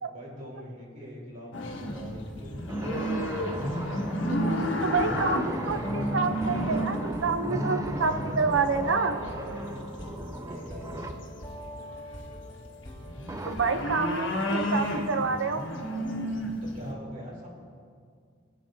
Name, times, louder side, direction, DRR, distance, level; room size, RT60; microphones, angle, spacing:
voice 1, 0.1-2.7 3.9-5.4 8.9-9.7 10.5-11.2 14.3-14.8 16.6-17.5, equal, 45° right, -4 dB, 3.0 m, -43 dB
sound 1, 1.5-9.8 10.8-11.4 11.8-16.9, equal, 80° left, 1.4 m, -32 dB
Table Scratch, 2.7-11.3 13.3-13.6, right 2 dB, 15° right, 0.4 m, -38 dB
sound 2, 4.3-13.7, equal, 20° left, 2.4 m, -44 dB
voice 2, 4.8-9.2 13.4-15.7, right 4 dB, 85° right, 9 dB, 0.6 m, -28 dB
18.5 x 9.0 x 2.7 m, 2.1 s
head